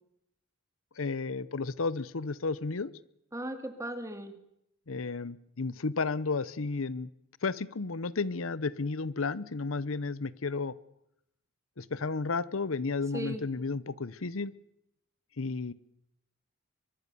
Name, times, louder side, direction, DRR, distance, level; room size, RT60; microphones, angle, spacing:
voice 1, 1.0-2.9 4.9-7.1 7.4-10.8 11.8-14.5 15.4-15.7, left 4 dB, 85° left, 19 dB, 0.8 m, -32 dB
voice 2, 3.3-4.3 13.1-13.4, right 1 dB, 15° right, 9 dB, 2.6 m, -37 dB
23.0 x 23.0 x 7.0 m, 0.77 s
head